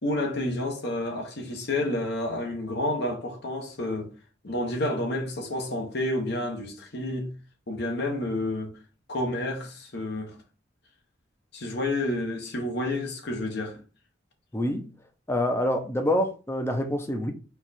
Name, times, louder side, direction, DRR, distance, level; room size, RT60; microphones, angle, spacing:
voice 1, 0.0-4.1 4.4-7.3 7.7-8.8 9.1-10.3 11.5-13.8, left 1 dB, 65° left, 1.1 m, -30 dB
voice 2, 14.5-14.9 15.3-17.3, left 1 dB, 15° left, 0.6 m, -26 dB
4.5 x 2.4 x 4.1 m
head